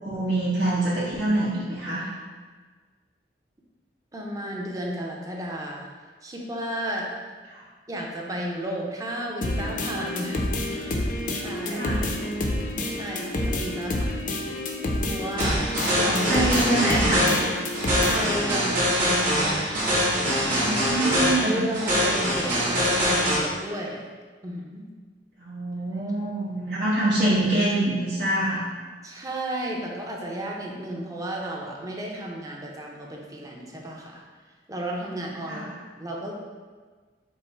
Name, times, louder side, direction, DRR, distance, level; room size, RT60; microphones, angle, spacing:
voice 1, 0.0-2.1 7.5-7.6 11.7-12.1 16.3-17.3 20.5-21.6 25.4-28.6 35.5-35.7, right 1 dB, 80° right, -11 dB, 1.1 m, -25 dB
voice 2, 4.1-5.9 6.2-7.1 7.9-11.9 12.9-14.3 15.0-15.6 15.9-16.4 18.1-19.2 21.4-24.0 24.4-24.9 29.0-34.2 34.7-35.7 36.0-36.3, right 1 dB, 20° right, -2 dB, 0.6 m, -33 dB
sound 1, 9.4-18.4, left 1 dB, 50° left, 0.5 m, -28 dB
sound 2, 15.4-23.4, equal, 55° right, 1.4 m, -24 dB
5.4 x 2.0 x 4.4 m, 1.5 s
head